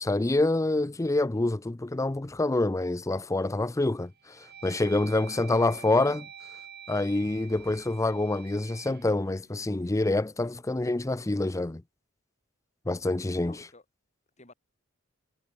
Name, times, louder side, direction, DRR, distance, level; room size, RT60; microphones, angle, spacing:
voice 1, 0.0-6.2 6.9-11.8 12.9-13.6, left 2 dB, 15° left, 0.5 m, -27 dB
sound 1, 3.2-3.6 4.1-10.3, right 8 dB, 55° right, 4.7 m, -48 dB
voice 2, 5.2-5.9 13.4-13.8 14.4-14.5, left 2 dB, 35° left, 6.2 m, -53 dB
head